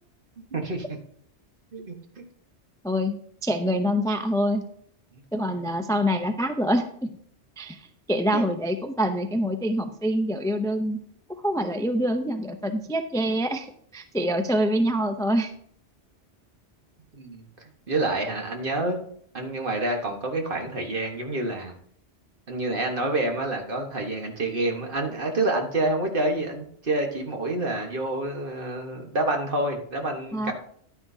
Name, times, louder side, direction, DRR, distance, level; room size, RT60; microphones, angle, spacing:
voice 1, 0.5-1.0 1.7-2.2 5.1-5.2 8.3-8.4 17.1-17.4 17.9-19.0 19.3-21.7 22.5-30.5, right 2 dB, 50° right, 3 dB, 1.5 m, -28 dB
voice 2, 2.8-4.6 5.3-6.9 7.6-11.0 11.4-13.7 13.9-15.5 30.3-30.5, equal, 5° left, 7 dB, 0.4 m, -25 dB
10.5 x 9.8 x 2.7 m, 0.63 s
omnidirectional pair, 1.2 m